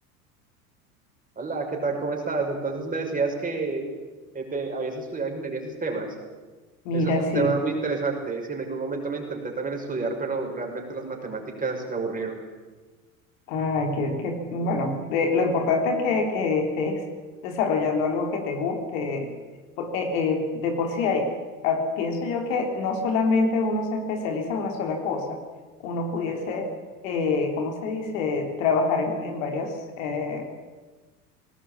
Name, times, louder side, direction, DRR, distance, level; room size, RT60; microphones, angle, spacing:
voice 1, 1.4-3.9 4.3-6.1 6.9-12.4 26.3-26.5, right 4 dB, 20° right, 1 dB, 6.1 m, -29 dB
voice 2, 6.9-7.6 13.5-17.0 17.4-19.3 19.8-21.3 21.6-25.4 25.8-26.7 27.0-30.5, left 4 dB, 60° left, 3 dB, 3.7 m, -26 dB
20.0 x 18.5 x 8.8 m, 1.3 s
figure-of-eight pair, 75°, 45 cm